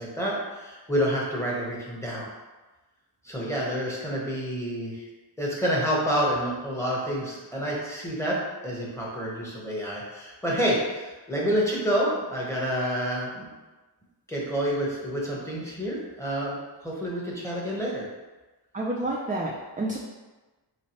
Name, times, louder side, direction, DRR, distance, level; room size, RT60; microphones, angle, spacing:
voice 1, 0.0-2.3 3.2-5.1 5.4-8.4 8.6-13.5 14.3-16.5 16.8-18.0, equal, 5° left, -5 dB, 1.0 m, -28 dB
voice 2, 18.7-20.0, right 1 dB, 20° right, -3 dB, 0.4 m, -29 dB
3.2 x 3.0 x 2.9 m, 1.2 s
wide cardioid pair, 70°, 46 cm